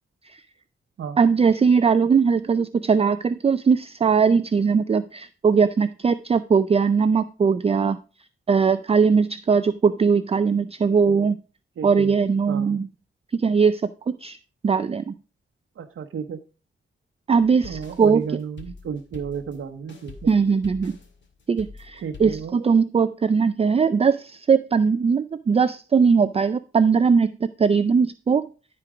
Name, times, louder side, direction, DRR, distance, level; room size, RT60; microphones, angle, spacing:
voice 1, 1.2-8.0 8.5-11.4 11.8-12.9 13.3-14.4 14.6-15.1 17.3-18.3 20.3-21.0 21.5-27.3 27.6-28.5, right 5 dB, 30° right, 12 dB, 0.4 m, -20 dB
voice 2, 11.8-12.1 12.5-12.8 15.8-16.4 17.6-20.3 22.0-22.5, right 7 dB, 80° right, 3 dB, 0.9 m, -33 dB
sound 1, 17.4-22.5, left 4 dB, 60° left, 2.1 m, -43 dB
13.5 x 4.5 x 4.9 m, 0.36 s
wide cardioid pair, 115°, 21 cm